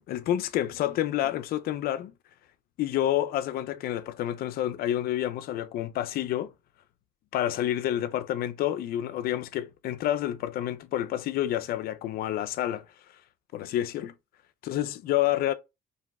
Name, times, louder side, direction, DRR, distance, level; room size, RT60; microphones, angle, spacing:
voice 1, 0.0-2.1 2.8-6.5 7.3-12.9 13.5-14.1 14.6-15.5, left 12 dB, 65° left, 0.4 m, -29 dB
2.6 x 2.0 x 3.4 m
cardioid pair, 110°, 17 cm